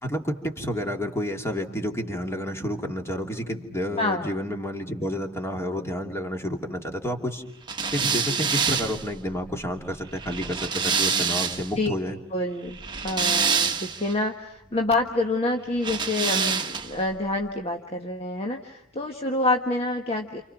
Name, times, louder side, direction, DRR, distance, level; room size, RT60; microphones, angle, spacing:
voice 1, 0.0-7.4 7.9-12.2, equal, 15° left, 3 dB, 2.7 m, -30 dB
voice 2, 4.0-4.3 11.8-11.9 12.3-20.4, left 2 dB, 30° left, 3 dB, 1.4 m, -27 dB
sound 1, 7.7-11.8 12.7-14.1 15.8-17.0, right 5 dB, 20° right, 1.4 m, -26 dB
29.5 x 28.5 x 5.9 m, 0.76 s
head